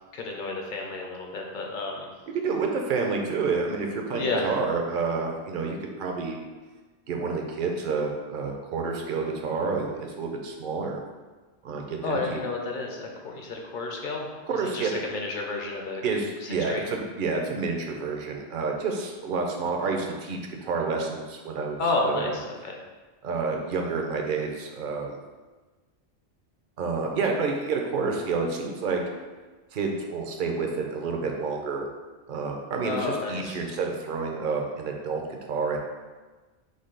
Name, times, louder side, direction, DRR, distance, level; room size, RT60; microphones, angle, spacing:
voice 1, 0.1-2.1 4.1-4.6 12.0-16.0 16.4-16.9 21.8-22.8 32.8-33.6, left 3 dB, 55° left, 1 dB, 0.7 m, -31 dB
voice 2, 2.4-6.4 7.1-11.0 11.6-12.4 14.5-14.9 16.0-22.4 23.2-25.2 26.8-29.0 29.7-31.9 32.3-35.8, right 4 dB, 60° right, 2 dB, 0.7 m, -29 dB
5.0 x 2.3 x 3.8 m, 1.3 s
omnidirectional pair, 1.1 m